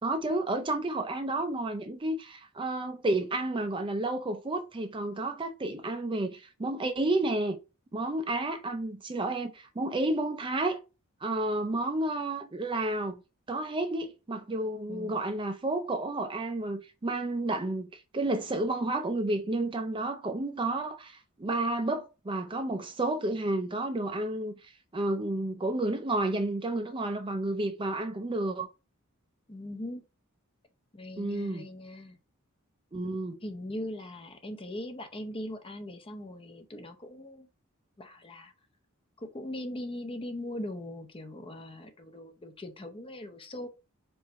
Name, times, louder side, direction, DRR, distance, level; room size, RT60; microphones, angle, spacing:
voice 1, 0.0-7.6 7.9-10.8 11.2-13.2 13.5-24.5 24.9-28.7 31.2-31.7 32.9-33.4, right 2 dB, 25° right, 0.5 m, -31 dB
voice 2, 14.9-15.2 29.5-30.0 30.9-32.2 33.4-37.5 38.0-38.5 39.2-43.7, left 1 dB, 25° left, 0.7 m, -40 dB
4.6 x 2.6 x 4.2 m
head